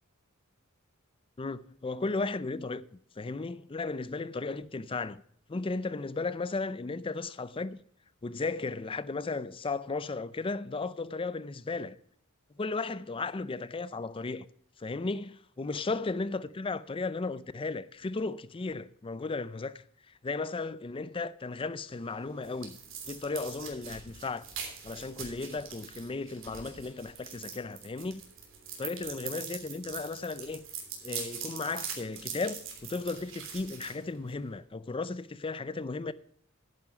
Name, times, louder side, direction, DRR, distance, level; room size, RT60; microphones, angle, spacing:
voice 1, 1.4-2.9 3.2-5.2 5.5-7.8 8.2-12.0 12.6-14.5 14.8-19.8 20.2-22.8 23.1-24.5 24.8-28.2 28.8-30.6 31.0-36.1, left 3 dB, 25° left, 0.4 m, -35 dB
sound 1, 21.9-34.6, right 7 dB, 65° right, 3.2 m, -43 dB
10.5 x 9.3 x 4.7 m
head